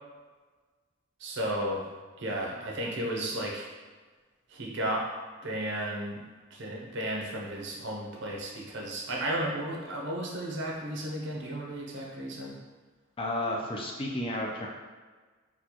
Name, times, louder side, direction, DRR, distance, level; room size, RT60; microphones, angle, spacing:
voice 1, 1.2-1.9 2.2-3.7 4.5-5.1 5.4-6.2 6.5-12.6, right 1 dB, 60° right, -2 dB, 0.7 m, -33 dB
voice 2, 13.2-14.7, left 1 dB, 25° left, -1 dB, 0.4 m, -32 dB
4.2 x 2.2 x 2.9 m, 1.4 s
head